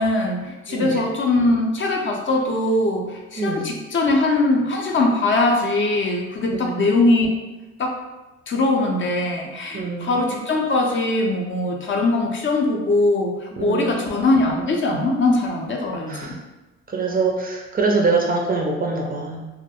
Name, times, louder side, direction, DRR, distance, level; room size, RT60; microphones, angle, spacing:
voice 1, 0.0-7.4 7.8-8.0 8.5-16.4, left 2 dB, 40° left, 1 dB, 0.5 m, -21 dB
voice 2, 0.7-1.0 3.4-3.7 6.5-6.8 9.7-10.2 13.6-13.9 16.1-16.4 16.9-19.5, right 3 dB, 30° right, 0 dB, 0.4 m, -24 dB
2.2 x 2.0 x 2.8 m, 1.1 s
cardioid pair, 90°, 30 cm